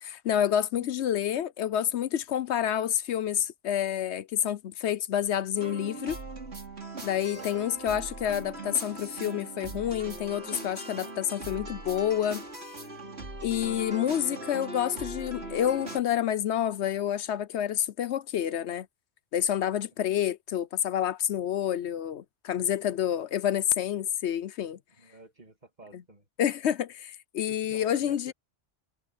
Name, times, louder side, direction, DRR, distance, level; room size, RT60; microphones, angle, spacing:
voice 1, 0.0-6.2 7.0-12.4 13.4-18.9 19.3-24.8 25.9-26.0 26.4-28.3, left 10 dB, 70° left, 0.9 m, -28 dB
sound 1, 5.6-16.0, right 2 dB, 60° right, 4.1 m, -40 dB
voice 2, 7.3-7.7 14.3-14.4 25.0-26.3 27.5-28.3, right 2 dB, 35° right, 2.7 m, -50 dB
omnidirectional pair, 1.2 m